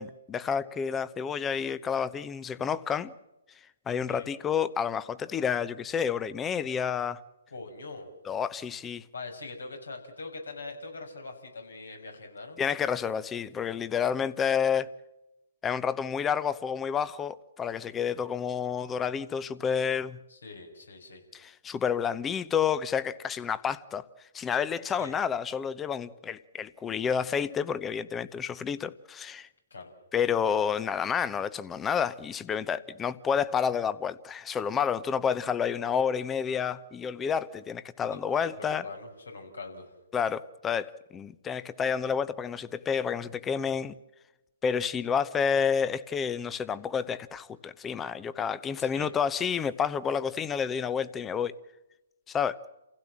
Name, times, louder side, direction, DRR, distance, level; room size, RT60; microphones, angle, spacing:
voice 1, 0.0-3.1 3.9-7.2 8.3-9.0 12.6-14.9 15.6-20.2 21.3-24.1 24.3-29.5 30.1-38.8 40.1-43.9 44.6-51.6 52.3-52.6, left 7 dB, 15° left, 0.9 m, -29 dB
voice 2, 4.0-4.3 7.5-8.1 9.1-12.6 20.3-21.2 24.9-25.2 29.7-29.9 38.0-39.9 48.8-49.1, left 3 dB, 80° left, 6.1 m, -43 dB
28.5 x 16.5 x 7.5 m
hypercardioid pair, 135°, 0 cm